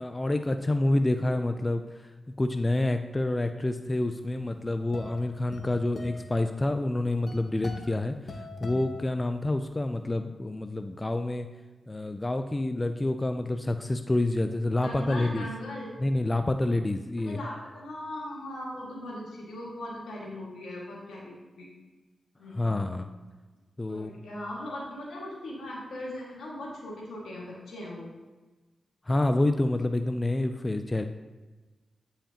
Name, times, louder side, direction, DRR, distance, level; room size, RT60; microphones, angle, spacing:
voice 1, 0.0-2.1 2.4-11.5 11.9-15.5 16.0-17.4 22.5-23.1 23.8-24.2 29.1-31.0, left 2 dB, 25° left, 8 dB, 0.4 m, -28 dB
sound 1, 4.3-9.8, left 2 dB, 55° left, 0.8 m, -43 dB
voice 2, 14.8-15.9 17.2-21.7 22.4-23.0 23.9-28.1, left 1 dB, 80° left, -4 dB, 1.8 m, -39 dB
8.3 x 5.6 x 2.9 m, 1.3 s
cardioid pair, 45°, 0 cm